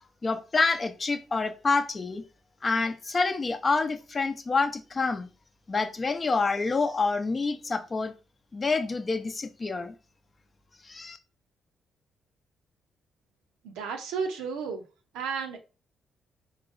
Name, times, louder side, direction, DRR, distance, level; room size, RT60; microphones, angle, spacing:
voice 1, 0.2-2.2 2.6-5.3 5.7-8.1 8.5-9.9 10.9-11.2, left 4 dB, 40° left, 0.5 m, -27 dB
voice 2, 13.6-14.8 15.1-15.6, right 5 dB, 85° right, 0.6 m, -32 dB
3.8 x 3.0 x 2.5 m
hypercardioid pair, 50°, 0 cm